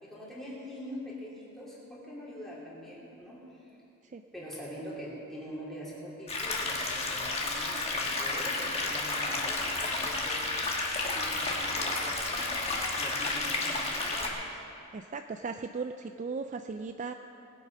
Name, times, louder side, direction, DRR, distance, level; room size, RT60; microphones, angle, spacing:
voice 1, 0.0-3.7 4.3-12.6 12.9-14.4, equal, ahead, -7 dB, 3.1 m, -44 dB
sound 1, 6.3-14.3, left 2 dB, 30° left, 1.4 m, -31 dB
voice 2, 14.9-17.1, right 4 dB, 35° right, 7 dB, 0.3 m, -37 dB
19.5 x 8.5 x 5.4 m, 2.6 s
head